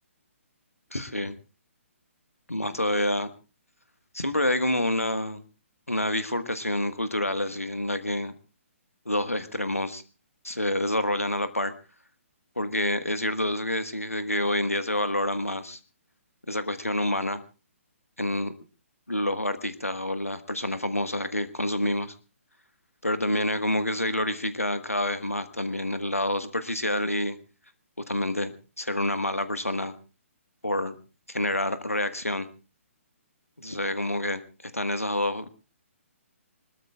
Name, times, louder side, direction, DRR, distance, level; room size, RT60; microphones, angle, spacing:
voice 1, 0.9-1.4 2.5-3.3 4.1-5.4 5.9-8.3 9.0-10.0 10.4-11.7 12.6-15.8 16.5-17.4 18.2-18.5 19.1-22.1 23.0-27.4 28.1-29.9 30.6-30.9 31.3-32.5 33.6-35.5, left 1 dB, 90° left, 11 dB, 1.4 m, -28 dB
25.0 x 21.0 x 2.4 m, 0.32 s
figure-of-eight pair, 135°, 8 cm